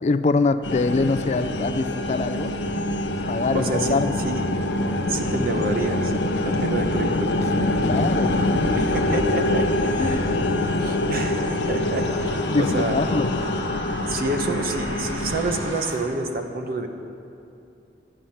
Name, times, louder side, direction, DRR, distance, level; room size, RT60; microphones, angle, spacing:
voice 1, 0.0-2.5 3.3-4.2 7.5-8.5 10.0-10.3 12.5-13.4, left 3 dB, 40° left, 11 dB, 0.3 m, -24 dB
sound 1, 0.6-15.7, left 1 dB, 80° left, 0.7 m, -25 dB
voice 2, 3.5-4.4 5.1-7.3 8.8-13.0 14.1-16.9, right 2 dB, 55° right, 5 dB, 0.9 m, -28 dB
sound 2, 8.0-15.9, right 1 dB, 70° right, 2.4 m, -39 dB
11.5 x 9.0 x 5.7 m, 2.7 s
head